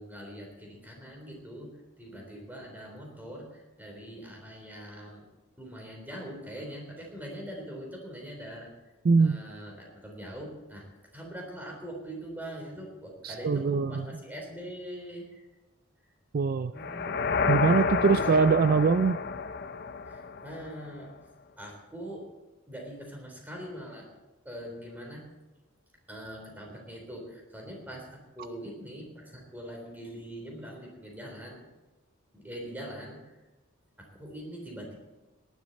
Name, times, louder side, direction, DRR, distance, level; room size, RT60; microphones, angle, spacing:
voice 1, 0.0-1.7 2.0-5.3 5.6-8.7 9.2-10.9 11.1-15.5 16.7-17.1 18.0-18.3 20.1-21.1 21.6-22.3 22.7-24.1 24.4-25.3 26.1-31.7 32.3-33.4 34.0-34.9, equal, 10° right, 0 dB, 3.7 m, -42 dB
voice 2, 9.0-9.4 13.2-14.0 16.3-16.7 17.5-19.2, right 5 dB, 45° right, 12 dB, 0.4 m, -23 dB
underwater explosion, 16.8-20.9, left 5 dB, 50° left, 0.7 m, -30 dB
18.0 x 11.0 x 4.2 m, 1.1 s
head